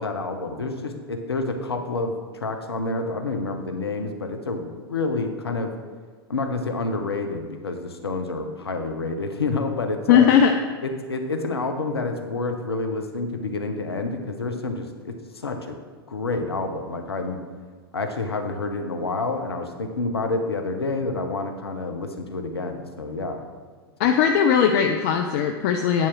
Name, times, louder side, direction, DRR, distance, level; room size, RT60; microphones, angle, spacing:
voice 1, 0.0-5.7 6.3-10.3 10.8-15.8 16.1-17.4 17.9-23.4 24.0-24.1, left 3 dB, 75° left, 5 dB, 0.9 m, -28 dB
voice 2, 10.1-10.5 24.0-26.1, left 8 dB, 40° left, 5 dB, 0.5 m, -18 dB
9.1 x 4.3 x 6.1 m, 1.5 s
figure-of-eight pair, 95°, 13 cm